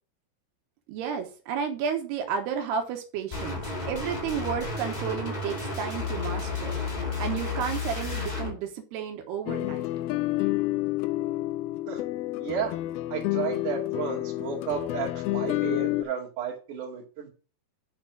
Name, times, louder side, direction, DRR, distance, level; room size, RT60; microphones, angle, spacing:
voice 1, 0.9-6.8 7.2-9.9, right 7 dB, 85° right, 4 dB, 3.2 m, -32 dB
sound 1, 3.3-8.5, left 4 dB, 15° left, 1.5 m, -32 dB
sound 2, 9.5-16.0, left 17 dB, 80° left, 2.3 m, -29 dB
voice 2, 12.4-12.7 13.1-17.3, right 7 dB, 55° right, 0 dB, 3.4 m, -33 dB
7.3 x 6.1 x 6.0 m, 0.36 s
omnidirectional pair, 4.6 m